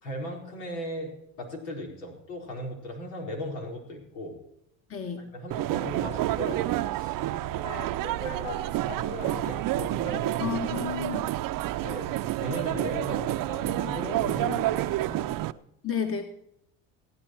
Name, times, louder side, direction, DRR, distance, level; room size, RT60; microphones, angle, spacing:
voice 1, 0.0-4.4 5.2-10.9 11.8-15.3, equal, 80° left, 1 dB, 4.5 m, -37 dB
voice 2, 4.9-5.2 10.4-11.2 15.8-16.2, left 8 dB, 30° left, 4 dB, 1.9 m, -31 dB
sound 1, 5.5-15.5, right 15 dB, 50° right, 0.7 m, -29 dB
16.0 x 9.5 x 4.5 m, 0.76 s
supercardioid pair, 90°, 41 cm